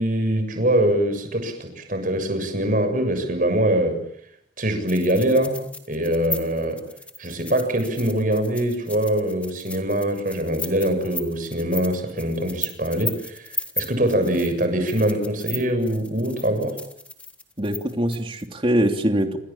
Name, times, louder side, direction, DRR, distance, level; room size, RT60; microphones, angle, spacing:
voice 1, 0.0-4.0 4.6-6.8 7.2-13.5 13.8-16.8, right 1 dB, 45° right, 8 dB, 7.1 m, -23 dB
sound 1, 4.9-18.5, left 3 dB, 5° left, 2.6 m, -35 dB
voice 2, 17.6-19.4, equal, 30° right, 4 dB, 3.1 m, -23 dB
28.5 x 26.5 x 7.3 m, 0.70 s
head